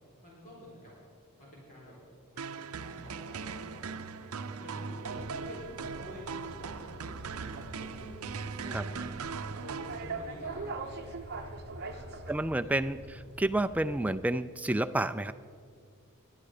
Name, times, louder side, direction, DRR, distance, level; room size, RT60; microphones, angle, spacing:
voice 1, 0.2-0.9 1.4-1.9 2.3-3.9 4.1-8.1 8.4-9.1 9.5-12.1 12.6-12.8, equal, 35° left, -5 dB, 4.0 m, -49 dB
sound 1, 2.4-10.5, right 5 dB, 75° right, 0.6 m, -40 dB
sound 2, 5.0-14.1, right 3 dB, 45° right, 1.0 m, -44 dB
voice 2, 12.3-15.3, right 1 dB, 5° right, 11 dB, 0.3 m, -30 dB
21.0 x 11.0 x 5.0 m, 2.2 s
head